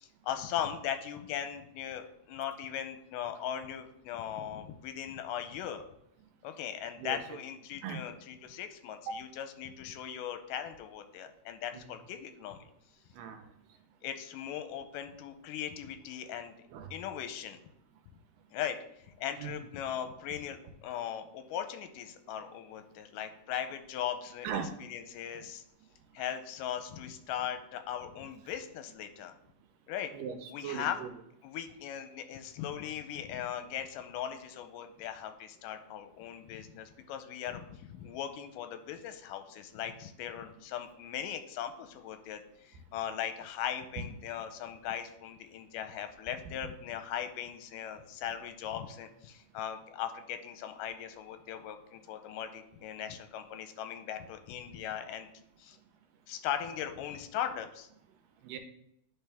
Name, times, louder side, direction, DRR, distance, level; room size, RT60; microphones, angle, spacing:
voice 1, 0.0-5.8 6.4-12.6 14.0-16.5 16.9-17.6 18.5-18.8 19.2-24.5 24.8-25.6 26.1-29.3 29.9-30.1 30.5-31.0 31.4-55.3 55.6-55.8 56.3-57.9, left 9 dB, 90° left, 8 dB, 2.2 m, -39 dB
voice 2, 13.1-13.5 16.7-16.9 19.4-19.6 24.4-24.7 25.3-25.4 30.1-31.1 58.4-58.6, right 7 dB, 90° right, 7 dB, 2.3 m, -38 dB
10.0 x 4.5 x 3.5 m, 0.78 s
omnidirectional pair, 3.8 m